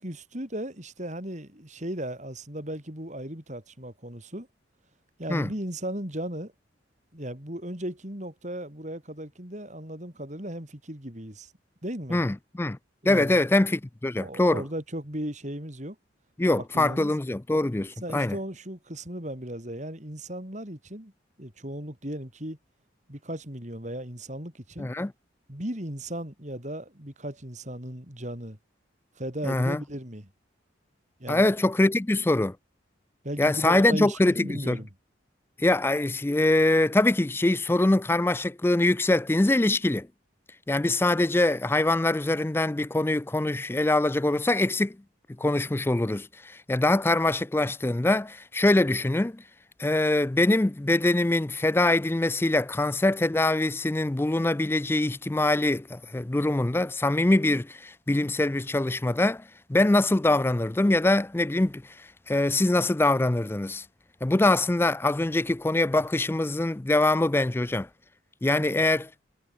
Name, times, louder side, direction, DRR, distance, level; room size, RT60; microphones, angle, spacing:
voice 1, 0.0-4.5 5.2-6.5 7.1-11.5 11.8-12.2 13.0-13.4 14.2-16.0 16.6-17.1 18.0-21.1 21.4-22.6 23.1-24.9 25.5-28.6 29.2-30.3 31.2-31.5 33.2-34.9 68.7-68.8, right 1 dB, 35° right, 4.3 m, -36 dB
voice 2, 12.1-12.8 13.1-14.6 16.4-18.4 24.8-25.1 29.4-29.8 31.3-32.6 33.4-34.8 35.6-40.1 40.7-45.0 45.4-49.4 49.8-59.4 59.7-63.9 64.2-67.9 68.4-69.1, left 2 dB, 10° left, 0.3 m, -23 dB
head